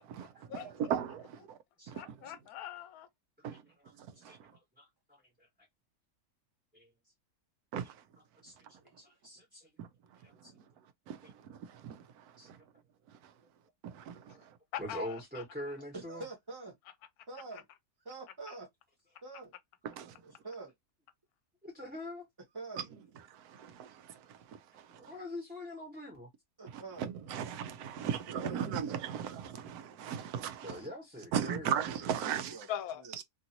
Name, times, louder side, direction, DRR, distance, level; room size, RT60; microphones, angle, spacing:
voice 1, 0.0-1.6 1.9-2.2 3.4-4.6 7.7-8.1 8.6-9.0 9.8-12.7 13.1-13.4 13.8-14.6 19.8-20.2 22.8-25.2 26.7-30.9 31.3-32.7 33.2-33.3, right 8 dB, 85° right, 1.1 m, -39 dB
voice 2, 1.9-3.1 14.7-15.8 17.5-17.6 18.5-18.6 32.7-33.0, left 11 dB, 80° left, 1.0 m, -42 dB
voice 3, 4.1-5.5 6.7-6.9 8.4-8.6 9.0-9.7 10.2-10.5 12.4-12.5 14.8-16.2 21.6-22.3 24.9-26.3 30.6-31.7, left 1 dB, 5° right, 1.0 m, -44 dB
voice 4, 15.9-16.7 17.3-17.6 18.0-18.7 19.2-19.5 20.4-20.7 22.5-22.8 26.6-27.1 28.4-28.7 32.2-32.7 33.0-33.1, right 3 dB, 25° right, 0.6 m, -45 dB
3.0 x 2.6 x 2.8 m
omnidirectional pair, 1.6 m